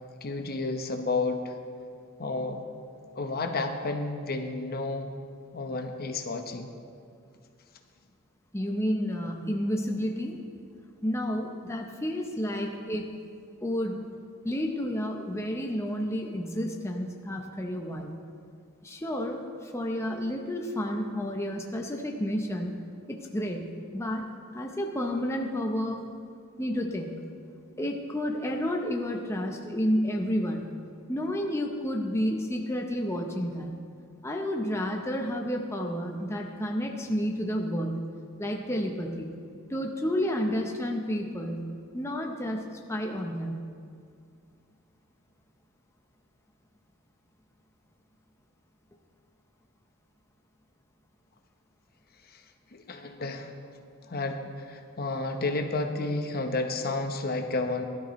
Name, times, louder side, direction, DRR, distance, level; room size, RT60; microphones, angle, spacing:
voice 1, 0.2-1.5 2.2-2.6 3.2-5.1 5.5-6.7 52.2-52.4 52.7-53.5 54.0-57.8, left 3 dB, 45° left, 5 dB, 0.9 m, -31 dB
voice 2, 8.5-10.4 11.0-13.2 13.6-14.0 14.4-18.1 18.8-22.8 23.1-26.1 26.6-27.1 27.8-30.7 31.1-33.8 34.2-38.0 38.4-39.3 39.7-43.6, equal, 15° left, 1 dB, 0.8 m, -31 dB
17.0 x 12.0 x 3.1 m, 2.3 s
head